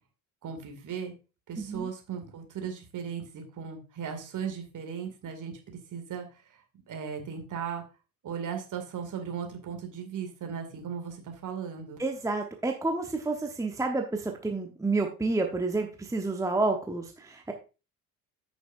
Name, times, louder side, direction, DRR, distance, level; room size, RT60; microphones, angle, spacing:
voice 1, 0.4-1.1 1.5-6.6 6.9-7.8 8.2-12.0, right 7 dB, 40° right, 4 dB, 2.3 m, -37 dB
voice 2, 1.6-1.9 12.0-17.5, right 3 dB, 5° right, 3 dB, 1.1 m, -29 dB
13.5 x 6.2 x 2.6 m, 0.31 s
figure-of-eight pair, 55°, 47 cm